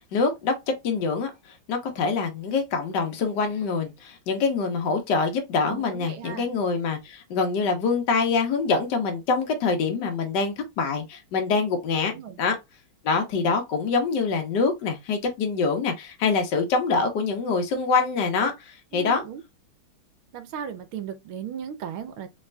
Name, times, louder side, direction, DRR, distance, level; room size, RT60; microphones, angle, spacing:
voice 1, 0.1-0.5 0.8-1.3 1.7-12.1 12.4-12.6 13.0-19.2, left 4 dB, 55° left, 1.7 m, -25 dB
voice 2, 5.7-6.5 12.1-12.4 18.9-19.4 20.3-22.3, right 8 dB, 80° right, 1.6 m, -36 dB
4.1 x 4.0 x 2.3 m
omnidirectional pair, 2.3 m